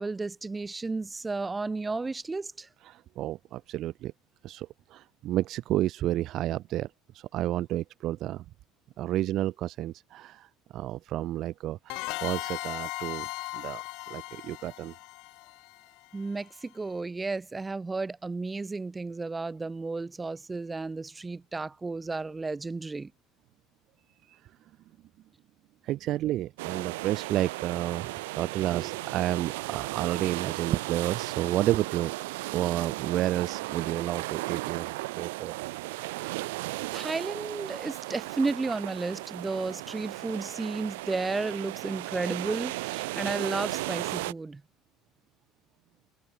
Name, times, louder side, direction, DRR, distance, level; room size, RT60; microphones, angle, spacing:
voice 1, 0.0-2.7 16.1-23.1 36.9-44.6, right 3 dB, 20° right, 6.0 m, -33 dB
voice 2, 2.9-4.1 4.4-6.9 7.1-8.4 9.0-10.5 10.7-13.3 13.5-13.8 14.1-14.9 25.8-32.1 32.5-35.6, right 14 dB, 55° right, 1.5 m, -31 dB
sound 1, 11.9-16.4, left 26 dB, 65° left, 5.6 m, -37 dB
sound 2, 26.6-44.3, right 21 dB, 70° right, 3.9 m, -35 dB
figure-of-eight pair, 65°, 0 cm